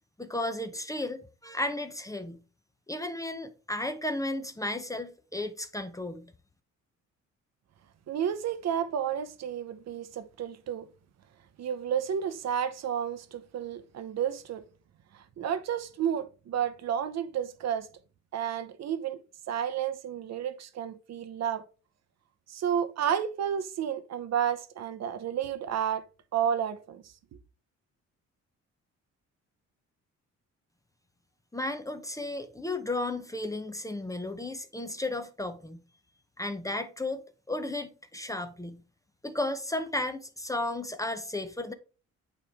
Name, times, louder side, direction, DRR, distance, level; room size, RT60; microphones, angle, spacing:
voice 1, 0.2-2.4 2.9-6.3 31.5-35.8 36.4-38.8 39.2-41.7, left 2 dB, 10° left, 0.7 m, -34 dB
voice 2, 8.1-10.9 11.6-14.6 15.1-17.9 18.3-19.2 19.5-21.6 22.5-26.0 26.3-27.1, right 9 dB, 60° right, 0.8 m, -31 dB
8.8 x 3.3 x 3.5 m
cardioid pair, 90°, 30 cm